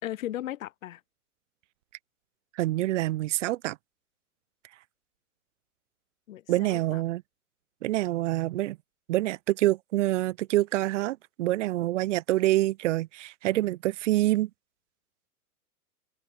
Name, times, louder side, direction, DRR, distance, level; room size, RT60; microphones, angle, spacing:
voice 1, 0.0-1.0 6.3-7.0, left 13 dB, 60° left, 5.4 m, -36 dB
voice 2, 2.6-3.8 6.5-7.2 7.8-8.8 9.1-14.5, right 16 dB, 55° right, 0.6 m, -26 dB
figure-of-eight pair, 105°, 45 cm